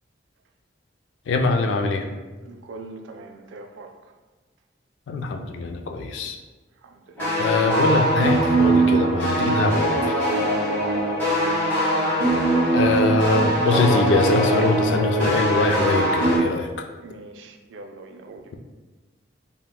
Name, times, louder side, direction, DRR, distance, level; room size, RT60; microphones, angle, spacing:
voice 1, 1.3-2.0 5.1-6.4 7.4-10.0 12.7-16.7, left 3 dB, 75° left, 4 dB, 0.3 m, -22 dB
voice 2, 2.4-4.1 6.8-7.6 10.4-11.6 17.0-18.6, right 2 dB, 75° right, 4 dB, 0.3 m, -41 dB
sound 1, 7.2-16.4, right 1 dB, 10° left, 1.1 m, -21 dB
3.5 x 2.1 x 2.3 m, 1.2 s
head